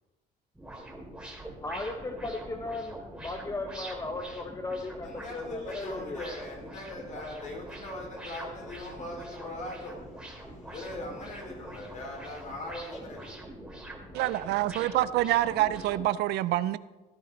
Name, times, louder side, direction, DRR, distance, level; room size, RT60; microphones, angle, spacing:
sound 1, 0.5-16.1, right 1 dB, 5° right, 2.7 m, -44 dB
voice 1, 1.6-6.3, left 2 dB, 20° left, 0.9 m, -36 dB
voice 2, 5.0-13.4, left 1 dB, 45° left, 4.6 m, -40 dB
voice 3, 14.1-16.8, right 14 dB, 80° right, 0.5 m, -26 dB
16.5 x 10.0 x 3.9 m
cardioid pair, 110°, 17 cm